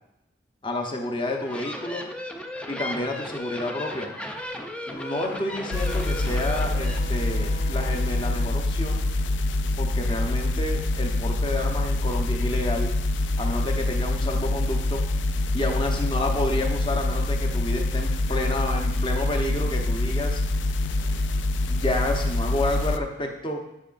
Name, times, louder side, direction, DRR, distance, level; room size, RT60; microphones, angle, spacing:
voice 1, 0.6-2.0 2.7-4.1 4.9-9.1 9.8-12.9 13.4-15.0 15.5-20.4 21.7-23.6, left 1 dB, 25° left, 2 dB, 0.9 m, -30 dB
sound 1, 1.2-7.0, left 1 dB, 5° left, 0.4 m, -36 dB
sound 2, 4.9-10.1, equal, 60° left, 1.3 m, -42 dB
sound 3, 5.7-23.0, left 2 dB, 75° left, 0.4 m, -25 dB
11.0 x 5.5 x 2.5 m, 0.86 s
head